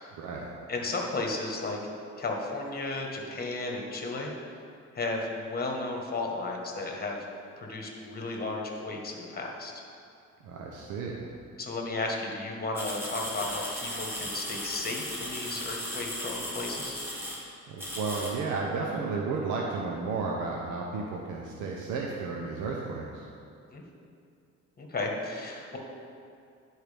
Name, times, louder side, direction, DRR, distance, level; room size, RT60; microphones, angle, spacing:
voice 1, 0.7-1.8 2.2-4.3 4.9-7.2 7.6-9.8 11.6-17.0 23.7-23.8 24.8-25.8, left 2 dB, 30° left, 0 dB, 1.3 m, -34 dB
voice 2, 10.4-11.3 17.7-23.2, right 4 dB, 90° right, -2 dB, 0.7 m, -33 dB
sound 1, 12.8-17.4 17.8-18.3, equal, 10° right, 1.8 m, -36 dB
10.5 x 4.6 x 3.4 m, 2.6 s
cardioid pair, 90°, 30 cm